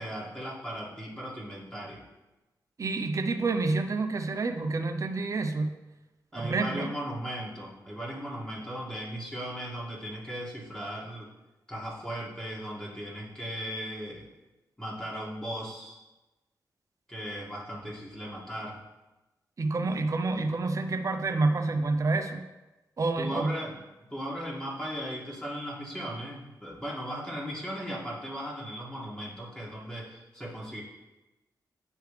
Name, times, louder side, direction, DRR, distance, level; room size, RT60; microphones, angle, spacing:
voice 1, 0.0-2.0 6.3-11.3 11.7-14.2 14.8-16.0 17.1-18.8 23.2-23.8 24.1-30.8, equal, 10° left, -5 dB, 1.9 m, -37 dB
voice 2, 2.8-5.7 6.3-6.9 19.6-22.5 23.0-23.5, right 3 dB, 45° right, 6 dB, 0.5 m, -28 dB
9.2 x 3.3 x 3.3 m, 1.0 s
cardioid pair, 60°, 8 cm